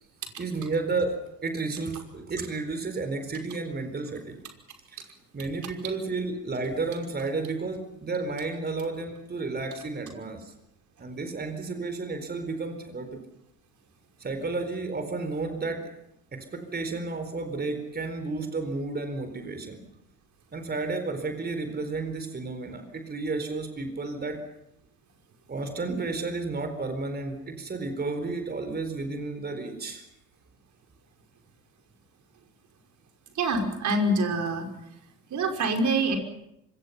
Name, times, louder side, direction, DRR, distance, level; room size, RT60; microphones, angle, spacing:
voice 1, 0.4-4.4 4.9-5.0 5.3-10.5 11.0-13.2 14.2-15.9 16.3-19.8 20.5-24.4 25.5-30.0, right 3 dB, 20° right, 8 dB, 4.3 m, -32 dB
voice 2, 33.3-34.7 35.3-36.2, right 2 dB, 35° right, 4 dB, 5.6 m, -25 dB
25.5 x 25.5 x 5.8 m, 0.83 s
figure-of-eight pair, 65°, 47 cm